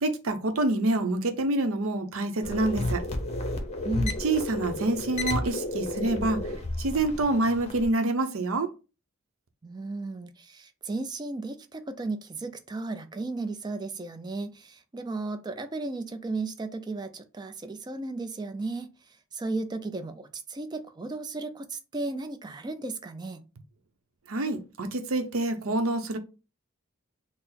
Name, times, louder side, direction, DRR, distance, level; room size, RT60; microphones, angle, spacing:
voice 1, 0.0-3.0 4.2-6.4 6.8-8.7 24.3-26.2, right 2 dB, 80° right, 0.7 m, -27 dB
sound 1, 2.4-7.9, left 2 dB, 30° left, 0.7 m, -32 dB
voice 2, 3.8-4.2 9.6-18.9 19.3-23.4, right 3 dB, 20° right, 0.4 m, -35 dB
3.8 x 2.0 x 4.2 m
head